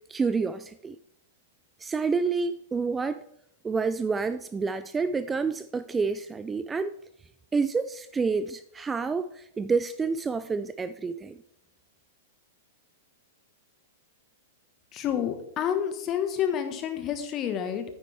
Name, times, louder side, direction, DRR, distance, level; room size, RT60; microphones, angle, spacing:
voice 1, 0.1-1.0 1.8-3.2 3.6-6.9 7.5-11.4, right 4 dB, 15° right, 0.4 m, -28 dB
voice 2, 14.9-17.8, left 9 dB, 35° left, 1.4 m, -29 dB
9.6 x 9.0 x 3.4 m
hypercardioid pair, 105°, 0 cm